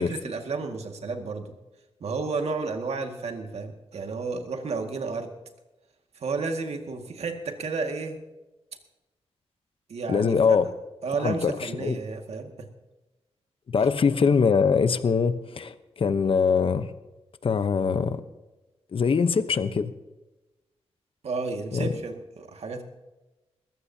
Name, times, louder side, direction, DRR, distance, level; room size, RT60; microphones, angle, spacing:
voice 1, 0.0-1.5 2.0-5.3 6.2-8.2 9.9-10.6 11.0-12.7 21.2-22.8, right 4 dB, 70° right, 4 dB, 2.0 m, -32 dB
voice 2, 10.1-10.7 11.2-12.0 13.7-16.9 17.4-18.2 18.9-19.9 21.7-21.9, left 5 dB, 55° left, 11 dB, 0.9 m, -23 dB
21.0 x 15.0 x 2.8 m, 1.1 s
wide cardioid pair, 100°, 11 cm